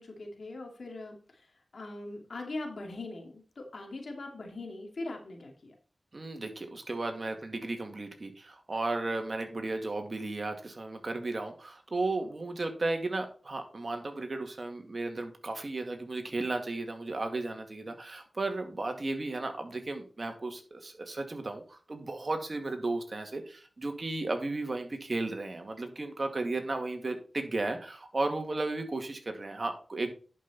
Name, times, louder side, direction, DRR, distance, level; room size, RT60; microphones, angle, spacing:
voice 1, 0.0-5.7, left 2 dB, 80° left, 2 dB, 2.5 m, -41 dB
voice 2, 6.1-30.1, right 2 dB, 55° right, 5 dB, 2.1 m, -34 dB
11.0 x 5.4 x 4.2 m, 0.40 s
cardioid pair, 45°, 0 cm